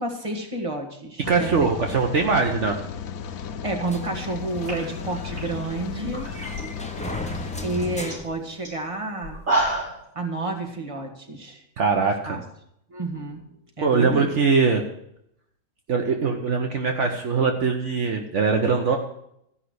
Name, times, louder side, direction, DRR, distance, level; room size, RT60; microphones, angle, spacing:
voice 1, 0.0-1.7 3.6-6.3 7.6-9.4 10.2-11.6 12.3-12.4 12.9-13.4 13.8-14.3, right 2 dB, 25° right, 2 dB, 1.8 m, -30 dB
Rain, 1.2-8.0, left 7 dB, 90° left, 1.2 m, -35 dB
voice 2, 1.3-2.8 11.8-12.4 13.8-14.8 15.9-19.0, right 4 dB, 60° right, 3 dB, 1.3 m, -22 dB
sound 1, 3.9-9.1, equal, 5° left, 0.7 m, -37 dB
sound 2, 4.3-4.4 4.6-6.6 6.9-7.4 7.7-7.8 8.1-8.3 8.6-8.7 9.2-10.0, right 2 dB, 75° right, 6.4 m, -28 dB
14.0 x 5.7 x 8.0 m, 0.75 s
omnidirectional pair, 1.4 m